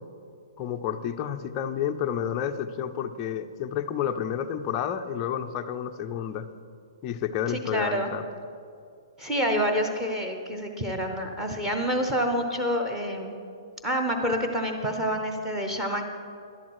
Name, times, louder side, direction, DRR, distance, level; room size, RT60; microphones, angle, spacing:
voice 1, 0.6-6.5 7.0-8.2, left 9 dB, 20° left, 5 dB, 0.4 m, -30 dB
voice 2, 7.5-8.1 9.2-13.3 13.8-16.0, equal, 5° right, 3 dB, 0.8 m, -27 dB
12.0 x 11.5 x 4.7 m, 2.4 s
hypercardioid pair, 180°, 3 cm